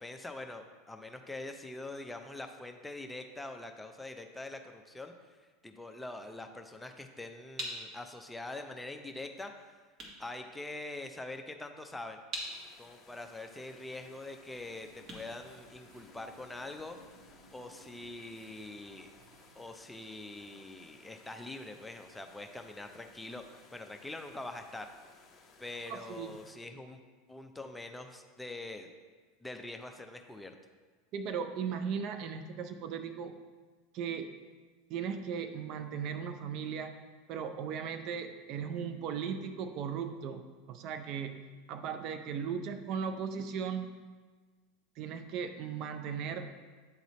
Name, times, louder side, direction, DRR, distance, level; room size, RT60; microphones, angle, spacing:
voice 1, 0.0-5.1 5.6-9.5 10.2-12.2 12.8-17.0 17.5-19.1 19.6-24.9 25.6-27.0 27.3-28.9 29.4-30.5, left 2 dB, 10° left, 5 dB, 0.6 m, -44 dB
sound 1, 7.5-16.3, right 1 dB, 35° right, 1.7 m, -47 dB
sound 2, 12.3-26.5, left 4 dB, 30° left, 1.4 m, -60 dB
sound 3, 14.5-19.6, equal, 70° right, 2.0 m, -60 dB
voice 2, 25.9-26.4 31.1-33.4 33.9-34.3 34.9-37.0 37.3-41.4 41.7-43.9 45.0-46.5, right 7 dB, 50° right, 8 dB, 0.5 m, -37 dB
9.1 x 3.9 x 3.1 m, 1.4 s
hypercardioid pair, 85°, 0 cm